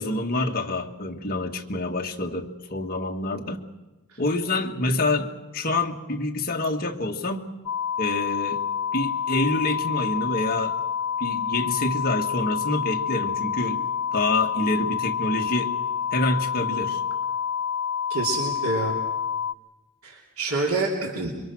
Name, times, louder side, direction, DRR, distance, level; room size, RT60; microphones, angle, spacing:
voice 1, 0.0-3.6 4.2-7.5 8.0-8.6 8.9-10.8 11.2-13.9 14.1-15.7 16.1-17.0, left 2 dB, 45° left, 2 dB, 1.8 m, -27 dB
sound 1, 7.7-19.5, left 7 dB, 85° left, 0.7 m, -28 dB
voice 2, 18.1-19.0 20.0-21.3, right 3 dB, 85° right, 0 dB, 3.1 m, -27 dB
26.0 x 23.5 x 6.2 m, 1.1 s
head